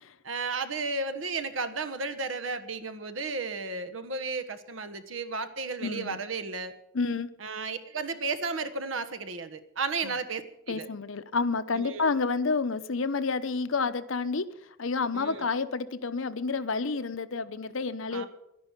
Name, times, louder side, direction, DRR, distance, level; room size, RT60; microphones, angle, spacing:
voice 1, 0.2-6.7 7.4-10.9 11.7-12.1 15.1-15.5 18.1-18.3, right 4 dB, 75° right, 10 dB, 1.3 m, -33 dB
voice 2, 5.8-6.2 6.9-7.3 10.0-10.1 10.7-18.3, left 4 dB, 85° left, 12 dB, 0.8 m, -29 dB
11.5 x 11.0 x 8.3 m, 0.82 s
head